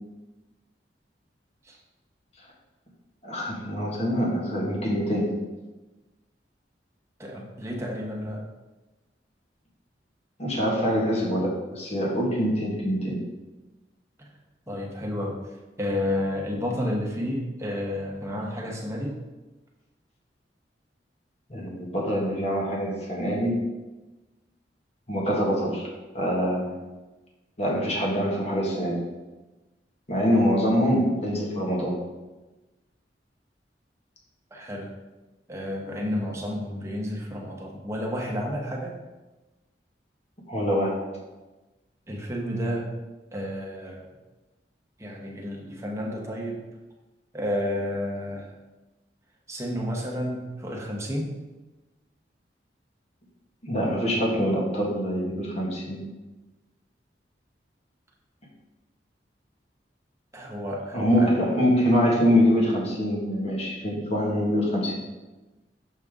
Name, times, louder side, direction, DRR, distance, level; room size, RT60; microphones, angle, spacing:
voice 1, 3.2-5.3 10.4-13.2 21.5-23.6 25.1-25.9 26.1-26.7 27.6-29.0 30.1-32.0 40.5-41.0 53.6-56.0 60.9-65.0, equal, 35° left, -3 dB, 1.6 m, -24 dB
voice 2, 7.2-8.4 14.2-14.3 14.7-15.4 15.8-19.2 34.5-34.9 35.5-38.9 42.1-42.9 43.3-44.0 45.0-46.6 47.3-48.5 49.5-51.3 60.3-61.4, left 1 dB, 15° right, -2 dB, 1.1 m, -31 dB
6.6 x 5.4 x 3.7 m, 1.1 s
head